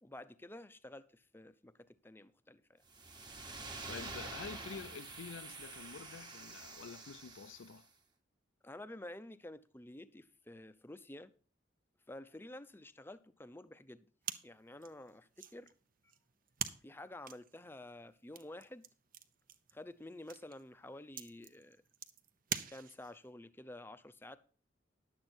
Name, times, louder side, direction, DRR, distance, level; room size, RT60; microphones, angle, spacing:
voice 1, 0.0-2.8 8.6-11.3 12.1-14.1 14.4-15.7 16.8-18.8 19.7-21.8 22.7-24.4, left 1 dB, 10° left, 0.6 m, -50 dB
sound 1, 2.9-7.8, right 3 dB, 25° right, 1.2 m, -47 dB
voice 2, 3.9-7.9, left 6 dB, 85° left, 0.5 m, -48 dB
Stick Snap and Crackle, 14.2-23.3, right 8 dB, 45° right, 0.8 m, -46 dB
11.0 x 8.1 x 4.4 m
head